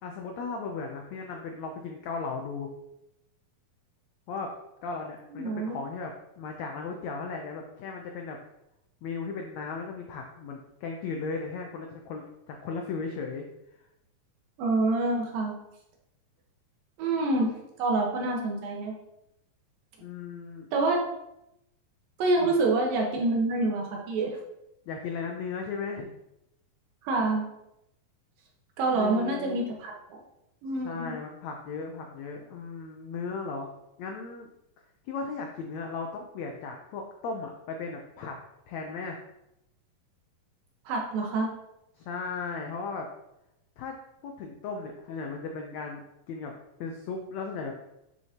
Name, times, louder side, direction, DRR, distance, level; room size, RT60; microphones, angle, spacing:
voice 1, 0.0-2.7 4.3-4.5 4.8-8.4 9.0-13.5 20.0-20.7 22.4-22.6 24.9-26.1 28.9-29.7 30.8-33.7 34.0-34.5 35.1-38.4 38.7-39.2 42.0-43.1 43.8-44.0 44.2-46.0 46.3-46.5 46.8-47.8, left 4 dB, 85° left, 2 dB, 1.5 m, -36 dB
voice 2, 5.3-5.8 14.6-15.5 17.0-18.9 20.7-21.0 22.2-24.4 27.0-27.4 28.8-30.2 30.6-31.1 40.9-41.5, right 2 dB, 75° right, -1 dB, 3.1 m, -27 dB
9.4 x 6.4 x 2.9 m, 0.84 s
omnidirectional pair, 4.2 m